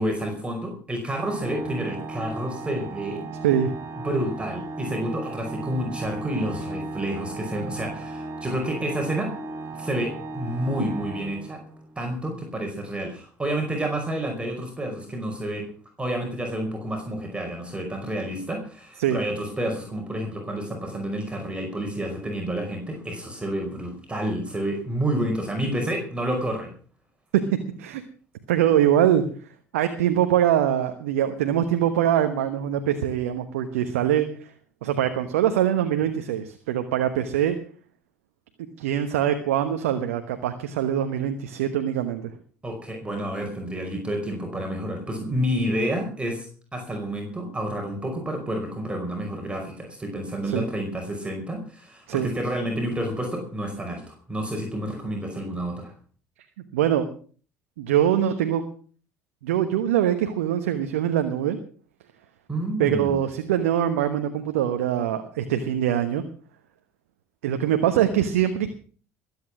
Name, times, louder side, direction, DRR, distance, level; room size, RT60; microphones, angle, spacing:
voice 1, 0.0-3.2 4.0-9.3 9.7-11.6 11.9-15.7 16.0-26.7 42.6-55.9 62.5-63.2, right 1 dB, 15° right, 2 dB, 5.2 m, -29 dB
Organ, 1.1-11.9, right 2 dB, 40° right, 4.3 m, -36 dB
voice 2, 28.5-29.2 29.7-34.5 34.8-37.6 38.8-42.3 50.4-50.6 52.1-52.3 56.7-57.1 57.8-58.6 59.4-61.6 62.8-66.2 67.4-68.7, right 10 dB, 75° right, 8 dB, 1.1 m, -23 dB
21.0 x 8.7 x 6.0 m, 0.42 s
hypercardioid pair, 60°, 7 cm